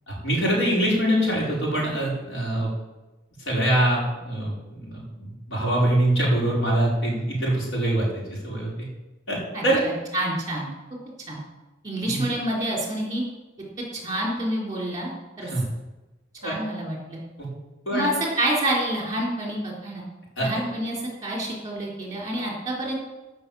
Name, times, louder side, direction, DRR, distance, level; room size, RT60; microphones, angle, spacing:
voice 1, 0.1-2.7 3.5-8.7 9.3-9.4 9.6-9.8 12.0-12.2 15.4-15.6 16.4-16.5 17.4-17.5 17.9-18.1 20.4-20.5, right 1 dB, 85° left, -4 dB, 5.0 m, -24 dB
voice 2, 9.5-10.7 11.3-11.4 11.8-13.2 13.9-15.1 15.4-15.5 16.4-17.2 17.9-20.0 20.4-22.9, right 1 dB, 20° right, -3 dB, 3.9 m, -28 dB
15.0 x 6.2 x 7.1 m, 1.1 s
head